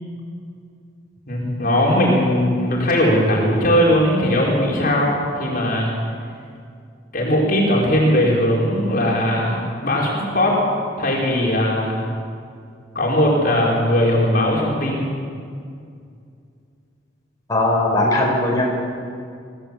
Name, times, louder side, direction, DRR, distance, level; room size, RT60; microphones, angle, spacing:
voice 1, 1.3-5.9 7.1-10.6 11.0-12.0 13.0-15.1, equal, 45° left, -3 dB, 5.4 m, -19 dB
voice 2, 17.5-18.6, left 2 dB, 20° left, -3 dB, 5.3 m, -18 dB
25.5 x 17.0 x 8.7 m, 2.3 s
head